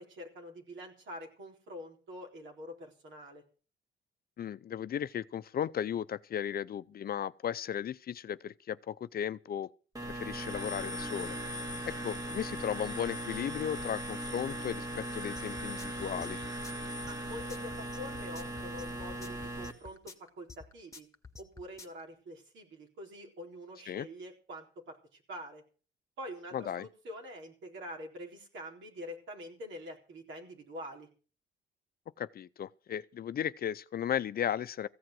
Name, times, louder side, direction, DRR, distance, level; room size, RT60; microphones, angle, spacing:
voice 1, 0.0-3.4 17.1-21.1 21.4-25.6 26.2-31.1, equal, 70° right, 4.1 m, -46 dB
voice 2, 4.4-9.7 10.0-11.4 11.9-16.4 23.9-24.1 26.5-26.9 32.2-34.9, left 9 dB, 50° left, 0.6 m, -35 dB
sound 1, 10.0-19.7, right 1 dB, 20° right, 2.3 m, -38 dB
sound 2, 15.4-22.0, left 4 dB, 15° left, 1.7 m, -50 dB
15.5 x 7.6 x 7.6 m
cardioid pair, 90°, 20 cm